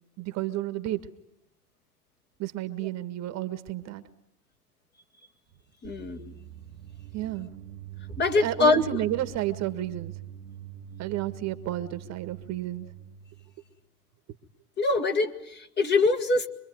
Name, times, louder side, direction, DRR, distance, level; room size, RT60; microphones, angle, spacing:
voice 1, 0.2-1.0 2.4-4.0 7.1-7.5 8.4-10.1 11.0-12.9, right 13 dB, 35° right, 11 dB, 1.8 m, -31 dB
voice 2, 5.8-6.3 8.2-8.8 14.8-16.5, left 3 dB, 20° left, 5 dB, 2.1 m, -24 dB
sound 1, 5.8-13.6, right 11 dB, 80° right, 1.9 m, -44 dB
26.0 x 22.5 x 9.5 m, 0.85 s
hypercardioid pair, 110°, 46 cm